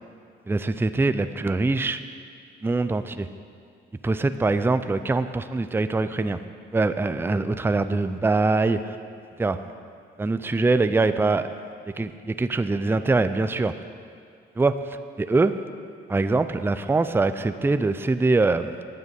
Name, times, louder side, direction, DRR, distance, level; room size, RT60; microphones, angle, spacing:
voice 1, 0.5-2.0 2.6-3.3 4.0-6.4 6.7-9.0 9.4-9.6 10.2-11.5 12.0-13.7 14.6-14.7 15.2-15.5 16.1-18.8, right 3 dB, 10° right, 10 dB, 0.5 m, -23 dB
9.9 x 9.1 x 8.1 m, 2.3 s
cardioid pair, 90°, 20 cm